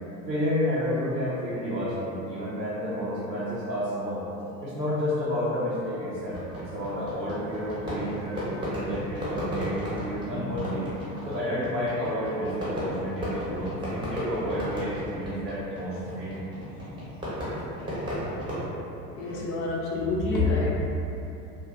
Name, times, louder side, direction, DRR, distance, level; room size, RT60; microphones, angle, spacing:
voice 1, 0.3-4.2 4.6-8.4 8.7-16.4, equal, 90° right, -8 dB, 0.8 m, -30 dB
Fireworks, 6.3-18.6, equal, 10° right, 0.8 m, -34 dB
voice 2, 19.1-20.8, left 3 dB, 35° left, -4 dB, 0.4 m, -26 dB
2.5 x 2.4 x 2.3 m, 2.9 s
figure-of-eight pair, 80°, 48 cm